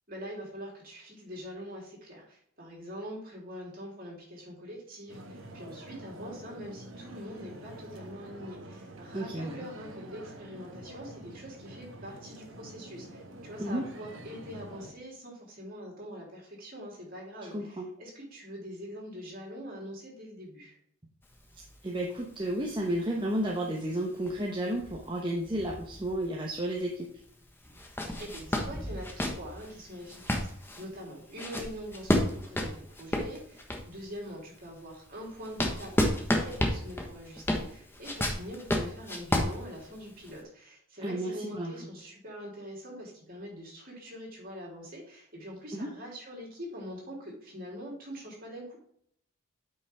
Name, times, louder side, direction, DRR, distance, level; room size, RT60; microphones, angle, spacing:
voice 1, 0.1-20.8 28.2-48.8, equal, 45° right, -3 dB, 3.4 m, -44 dB
sound 1, 5.1-14.9, right 1 dB, 65° right, 1.2 m, -47 dB
voice 2, 9.1-9.7 13.6-13.8 17.5-17.9 21.8-27.1 41.0-41.7 45.7-45.9, right 1 dB, 25° right, -1 dB, 0.9 m, -32 dB
sound 2, 21.2-26.6 26.9-27.0 27.6-34.0 34.6-40.3, left 1 dB, 10° left, 1.1 m, -32 dB
8.9 x 5.5 x 3.5 m, 0.66 s
head